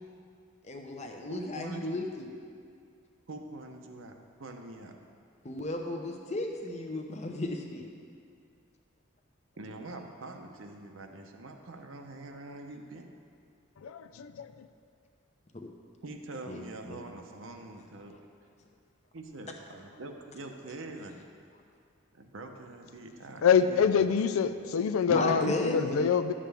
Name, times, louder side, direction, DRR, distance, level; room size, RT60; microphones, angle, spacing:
voice 1, 0.6-2.3 5.4-7.9 15.5-15.7 16.5-17.0 25.1-26.1, left 2 dB, 35° left, 3 dB, 0.7 m, -34 dB
voice 2, 1.3-2.0 3.3-4.9 9.6-13.1 16.0-18.2 19.1-21.2 22.1-24.2, right 2 dB, 75° right, 4 dB, 0.8 m, -44 dB
voice 3, 13.8-14.3 23.4-26.3, left 7 dB, 85° left, 10 dB, 0.4 m, -25 dB
11.5 x 7.4 x 3.4 m, 2.3 s
head